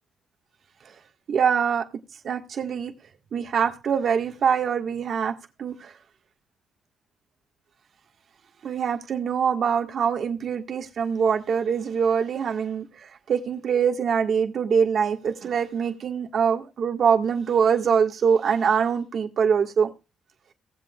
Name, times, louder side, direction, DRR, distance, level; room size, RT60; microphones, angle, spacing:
voice 1, 1.3-1.9 2.2-2.9 3.3-5.9 8.6-19.9, right 7 dB, 60° right, 1.6 m, -24 dB
18.0 x 7.8 x 2.4 m
cardioid pair, 90°, 0 cm